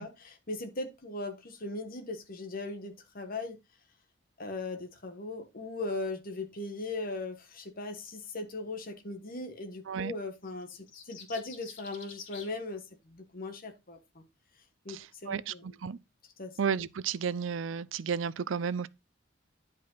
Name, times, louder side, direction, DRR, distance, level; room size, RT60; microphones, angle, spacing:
voice 1, 0.0-3.6 4.4-14.2 14.8-15.8 16.4-16.6, left 2 dB, 50° left, 1.4 m, -39 dB
sound 1, 10.4-12.5, left 6 dB, 90° left, 2.2 m, -48 dB
voice 2, 14.9-16.0 16.6-18.9, right 6 dB, 80° right, 0.5 m, -33 dB
10.0 x 5.4 x 3.9 m
head